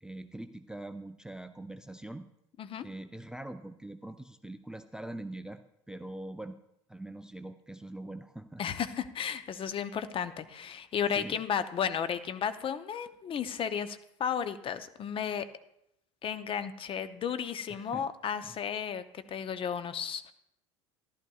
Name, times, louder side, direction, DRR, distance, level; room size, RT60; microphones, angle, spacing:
voice 1, 0.0-2.3 2.8-5.6 5.9-6.6 6.9-8.6 11.2-11.4 17.7-18.1 18.4-18.6, right 1 dB, 5° right, 10 dB, 0.4 m, -43 dB
voice 2, 8.6-15.5 16.2-20.3, left 8 dB, 35° left, 12 dB, 0.7 m, -34 dB
14.5 x 12.0 x 2.4 m, 0.80 s
figure-of-eight pair, 70°, 16 cm